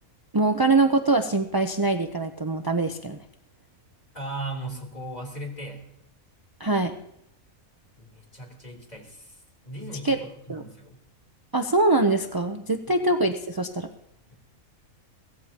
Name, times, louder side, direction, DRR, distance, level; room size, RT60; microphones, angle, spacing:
voice 1, 0.3-3.2 6.6-6.9 10.0-10.2 10.5-10.6 11.5-13.9, right 2 dB, 30° right, 5 dB, 0.4 m, -23 dB
voice 2, 4.1-5.9 8.0-11.0 12.9-13.1 14.3-14.4, right 1 dB, 30° left, 1 dB, 3.5 m, -38 dB
23.5 x 17.0 x 2.9 m, 0.78 s
omnidirectional pair, 1.5 m